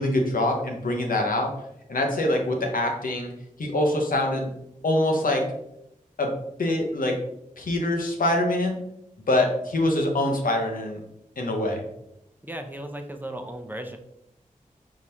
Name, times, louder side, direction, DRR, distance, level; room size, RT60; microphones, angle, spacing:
voice 1, 0.0-1.5 1.9-3.3 3.6-4.5 4.8-5.4 6.2-6.3 6.6-7.1 7.6-8.8 9.3-11.0 11.4-11.8, left 1 dB, 90° left, 1 dB, 0.9 m, -24 dB
voice 2, 12.4-14.0, right 1 dB, 15° right, 4 dB, 0.6 m, -35 dB
4.8 x 3.7 x 2.8 m, 0.80 s
wide cardioid pair, 70°, 14 cm